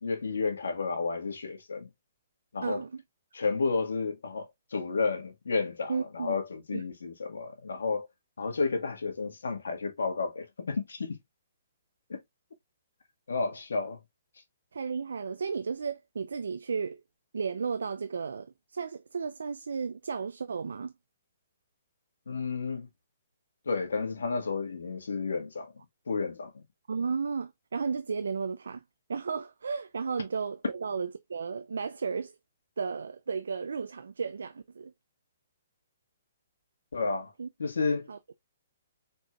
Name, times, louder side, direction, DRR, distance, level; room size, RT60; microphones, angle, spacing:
voice 1, 0.0-1.9 2.5-2.8 3.3-8.1 8.4-11.2 12.1-12.2 13.3-14.0 22.3-22.9 23.6-25.7 26.1-26.6 36.9-37.3 37.6-38.1, left 4 dB, 85° left, 1.6 m, -31 dB
voice 2, 2.6-3.0 5.9-6.3 6.7-6.8 14.7-17.0 17.3-20.9 26.9-28.8 29.1-32.4 32.8-34.9 37.4-37.5 38.1-38.2, right 5 dB, 80° right, 0.5 m, -34 dB
4.4 x 4.3 x 2.4 m
hypercardioid pair, 145°, 0 cm